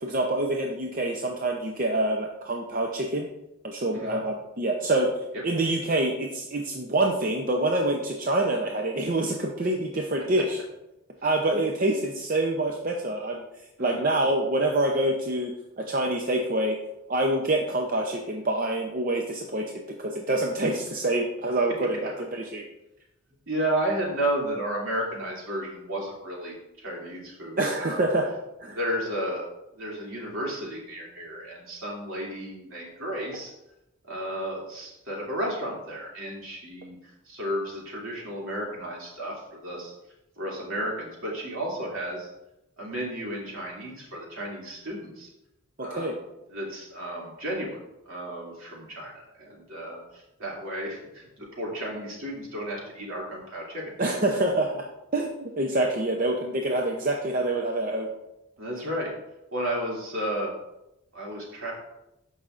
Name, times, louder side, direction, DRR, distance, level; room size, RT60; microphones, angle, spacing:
voice 1, 0.0-3.3 3.6-5.1 5.4-10.6 11.2-13.4 13.8-16.8 17.1-19.7 20.0-22.6 27.6-28.3 28.6-28.8 45.8-46.1 54.0-54.9 55.1-58.1, right 1 dB, 40° right, 1 dB, 0.6 m, -26 dB
voice 2, 23.5-28.1 28.7-29.4 29.7-33.5 34.1-39.9 40.4-42.3 42.8-45.3 45.8-46.1 46.5-47.8 48.1-53.9 58.6-59.1 59.5-60.5 61.1-61.7, right 1 dB, 70° right, -3 dB, 2.7 m, -33 dB
13.0 x 5.6 x 2.5 m, 0.88 s
head